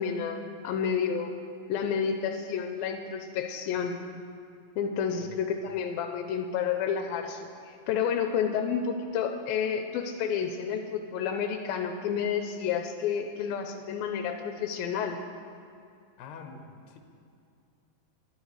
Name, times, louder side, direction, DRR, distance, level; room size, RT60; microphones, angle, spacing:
voice 1, 0.0-1.3 1.7-4.0 4.8-15.2, left 7 dB, 85° left, 5 dB, 2.4 m, -30 dB
voice 2, 16.2-17.0, left 5 dB, 60° left, 3 dB, 2.1 m, -45 dB
18.5 x 11.5 x 3.2 m, 2.4 s
omnidirectional pair, 4.2 m